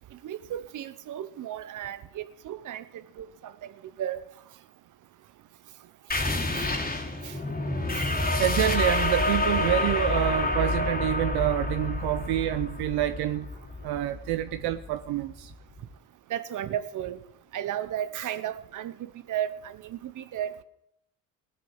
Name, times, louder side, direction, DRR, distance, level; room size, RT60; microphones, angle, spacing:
voice 1, 0.2-3.7 4.0-4.2 6.6-6.7 7.2-7.4 7.9-8.1 16.3-17.2 17.5-20.6, right 11 dB, 50° right, 1.0 m, -34 dB
sound 1, 6.1-15.3, left 2 dB, 20° left, 2.8 m, -28 dB
voice 2, 8.4-13.5 13.8-15.5, right 14 dB, 70° right, 0.7 m, -27 dB
19.0 x 7.7 x 6.5 m
cardioid pair, 95°, 40 cm